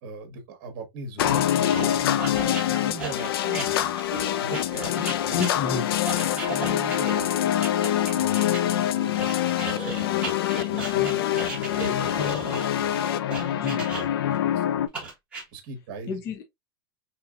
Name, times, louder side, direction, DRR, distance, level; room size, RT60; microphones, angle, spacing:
voice 1, 0.0-3.9 4.4-5.4 6.2-7.7 8.1-10.3 10.7-12.2 12.8-15.1 15.5-16.2, right 3 dB, 40° right, 1.0 m, -40 dB
sound 1, 1.2-14.9, left 11 dB, 90° left, 0.4 m, -25 dB
sound 2, 1.7-8.6 9.2-14.4 14.9-15.4, right 3 dB, 10° right, 1.2 m, -36 dB
voice 2, 5.3-6.0 12.0-12.5 13.6-13.8 16.1-16.4, left 5 dB, 25° left, 0.4 m, -31 dB
Wind instrument woodwind instrument, 5.8-13.6, left 9 dB, 60° left, 1.5 m, -45 dB
4.1 x 2.8 x 2.4 m
supercardioid pair, 175°, 12 cm